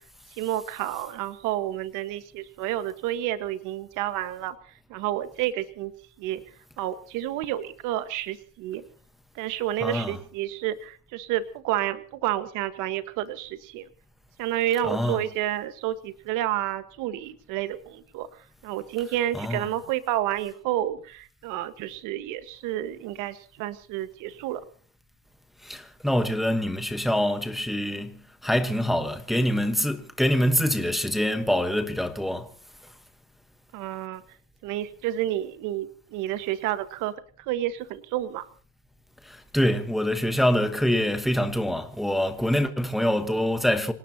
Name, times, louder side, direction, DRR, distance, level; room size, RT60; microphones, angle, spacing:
voice 1, 0.4-4.5 4.9-5.9 6.2-6.4 6.8-8.8 9.3-13.9 14.4-18.3 18.6-24.6 33.7-34.2 34.6-37.1 37.5-38.5, right 13 dB, 40° right, 1.5 m, -30 dB
voice 2, 9.8-10.2 14.8-15.2 19.3-19.7 25.6-32.5 39.2-43.9, equal, ahead, 1.2 m, -25 dB
27.0 x 18.0 x 2.9 m
supercardioid pair, 150°, 48 cm